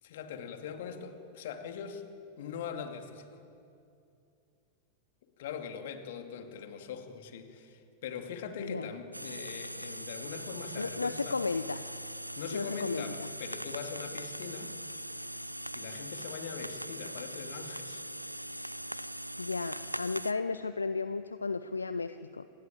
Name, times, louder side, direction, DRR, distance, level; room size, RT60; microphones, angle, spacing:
voice 1, 0.0-2.0 2.4-3.4 5.4-11.4 12.4-14.7 15.7-18.0, left 7 dB, 55° left, 6 dB, 2.6 m, -42 dB
sound 1, 9.1-20.3, equal, 90° right, 0.6 m, -41 dB
voice 2, 10.8-11.9 12.5-13.3 19.4-22.4, left 4 dB, 80° left, 13 dB, 0.7 m, -34 dB
28.0 x 20.5 x 8.6 m, 2.6 s
figure-of-eight pair, 90°, 0 cm